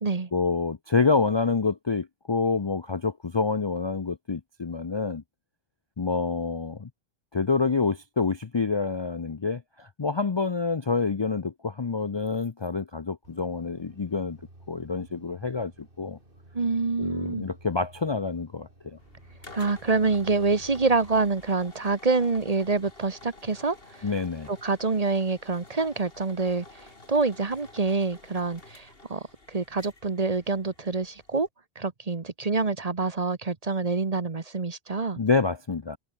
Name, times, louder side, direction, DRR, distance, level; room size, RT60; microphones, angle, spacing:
voice 1, 0.3-5.2 6.0-6.9 7.3-14.4 14.7-16.2 17.0-19.0 24.0-24.5 35.2-36.0, left 4 dB, 30° left, 0.5 m, -27 dB
sound 1, 13.2-21.2, right 1 dB, 55° right, 5.4 m, -53 dB
voice 2, 16.5-17.5 19.5-24.0 24.5-31.5 31.8-35.2, right 4 dB, 35° right, 1.2 m, -26 dB
sound 2, 19.0-31.5, left 2 dB, 60° left, 3.7 m, -51 dB
omnidirectional pair, 1.1 m